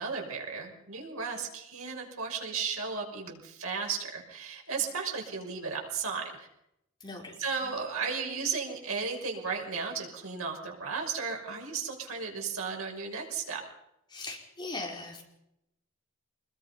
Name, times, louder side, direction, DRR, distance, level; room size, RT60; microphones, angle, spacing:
voice 1, 0.0-6.3 7.4-13.6, right 5 dB, 90° right, 0 dB, 6.0 m, -34 dB
voice 2, 7.0-7.4 7.6-7.7 14.1-15.2, left 3 dB, 20° left, 0 dB, 4.7 m, -39 dB
26.0 x 21.0 x 5.6 m, 0.83 s
head